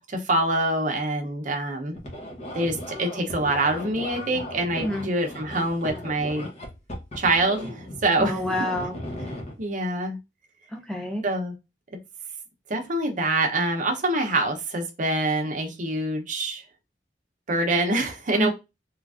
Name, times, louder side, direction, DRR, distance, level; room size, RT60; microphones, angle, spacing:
voice 1, 0.0-2.0 2.5-6.5 7.2-8.4 9.6-10.2 11.2-11.6 12.7-16.6 17.5-18.5, right 2 dB, 45° right, 3 dB, 0.7 m, -25 dB
sound 1, 1.9-9.6, left 1 dB, 40° left, 0.8 m, -37 dB
voice 2, 4.8-5.1 8.2-8.9 10.7-11.2 18.3-18.5, left 1 dB, 5° left, 2 dB, 0.4 m, -28 dB
3.2 x 2.4 x 2.4 m, 0.24 s
head